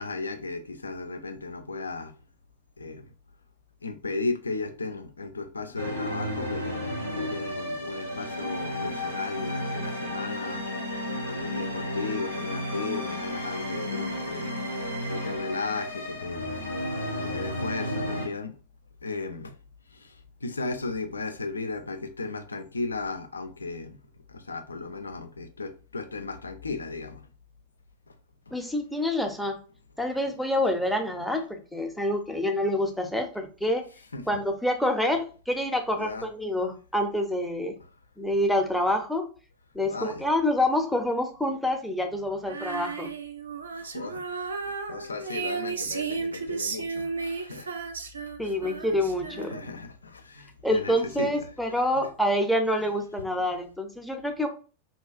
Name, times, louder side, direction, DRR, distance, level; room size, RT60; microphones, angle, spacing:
voice 1, 0.0-2.1 2.8-3.1 3.8-14.5 15.1-16.5 17.2-18.5 19.0-19.6 19.9-24.0 24.3-27.3 28.1-28.2 28.5-28.6 34.1-34.4 35.9-36.3 39.8-40.3 43.7-44.5 44.9-47.7 49.3-51.5 51.7-51.9 52.8-52.9, left 3 dB, 75° left, 0.3 m, -35 dB
sound 1, 5.8-18.3, left 1 dB, 90° right, 0.8 m, -33 dB
voice 2, 28.5-29.6 30.0-33.8 34.3-37.7 38.2-39.3 39.7-43.1 48.4-49.5 50.6-54.5, left 1 dB, ahead, 0.5 m, -27 dB
Female singing, 42.5-49.8, right 4 dB, 70° right, 0.4 m, -34 dB
2.8 x 2.2 x 2.4 m
figure-of-eight pair, 90°, 0 cm